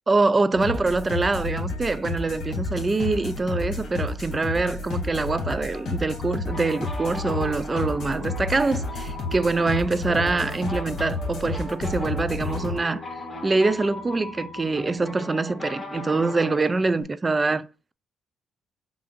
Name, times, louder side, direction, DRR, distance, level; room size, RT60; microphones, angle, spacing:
voice 1, 0.1-13.0 13.4-17.7, right 3 dB, 25° right, 0.3 m, -24 dB
sound 1, 0.5-12.8, left 3 dB, 60° left, 2.4 m, -31 dB
sound 2, 6.5-17.0, left 1 dB, 20° left, 2.0 m, -38 dB
7.4 x 2.6 x 2.5 m
cardioid pair, 105°, 0 cm